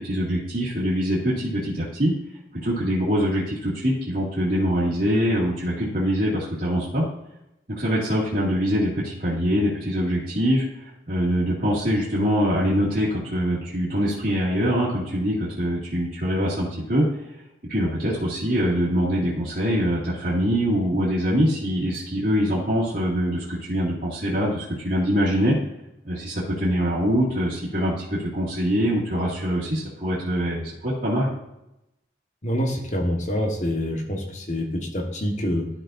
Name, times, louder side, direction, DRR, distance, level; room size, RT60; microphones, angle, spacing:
voice 1, 0.0-2.1 2.5-7.1 7.7-10.6 11.1-17.1 17.7-25.6 26.0-31.3, equal, 55° right, -9 dB, 2.3 m, -24 dB
voice 2, 32.4-35.7, equal, 40° left, 2 dB, 1.3 m, -26 dB
12.0 x 6.0 x 2.6 m, 0.87 s
head